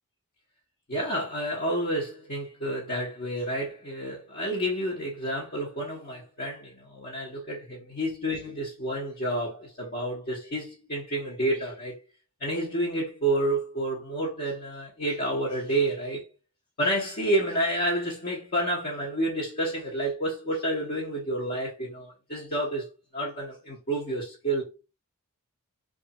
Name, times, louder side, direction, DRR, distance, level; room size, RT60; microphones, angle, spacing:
voice 1, 0.9-12.0 12.4-16.2 16.8-22.9 23.1-24.6, right 1 dB, 45° left, 1.0 m, -29 dB
3.1 x 2.4 x 4.1 m
head